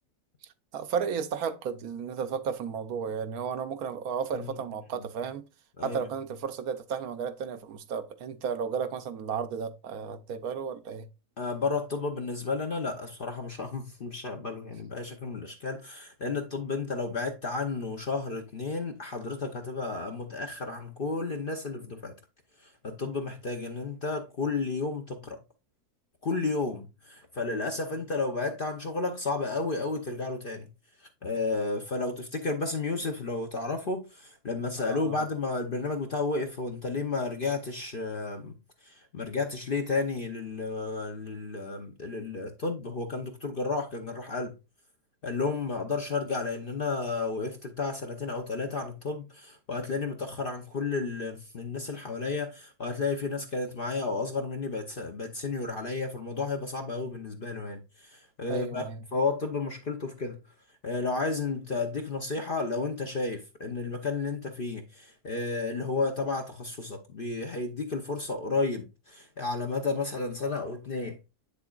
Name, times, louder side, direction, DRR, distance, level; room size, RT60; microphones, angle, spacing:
voice 1, 0.7-5.4 5.8-11.1 15.2-15.3 34.8-35.2 58.5-59.0, right 6 dB, 70° right, 1.1 m, -33 dB
voice 2, 11.4-22.1 22.6-25.4 26.2-30.7 31.0-44.6 45.2-58.8 59.1-60.4 60.8-71.2, left 3 dB, 45° left, 0.7 m, -32 dB
8.1 x 6.8 x 2.4 m
omnidirectional pair, 1.7 m